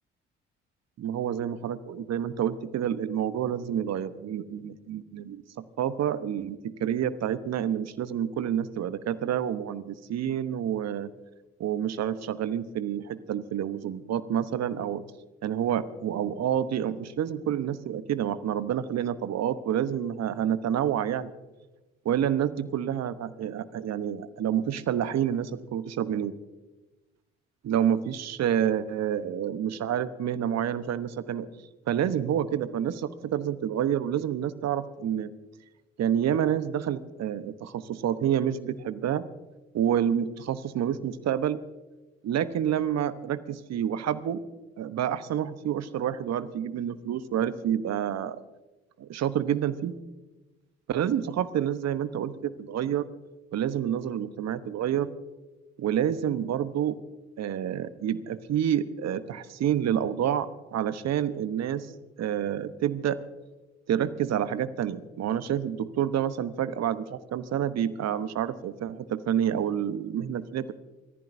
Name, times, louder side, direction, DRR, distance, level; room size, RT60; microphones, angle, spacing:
voice 1, 1.0-11.1 11.6-15.0 15.4-21.3 22.0-26.3 27.6-31.5 31.9-35.3 36.0-39.2 39.7-41.6 42.2-44.4 44.8-48.4 49.0-50.0 50.9-53.1 53.5-55.1 55.8-57.0 57.4-61.9 62.2-63.2 63.9-70.7, right 9 dB, 55° right, 13 dB, 1.0 m, -28 dB
28.0 x 14.5 x 2.7 m, 1.1 s
hypercardioid pair, 45°, 31 cm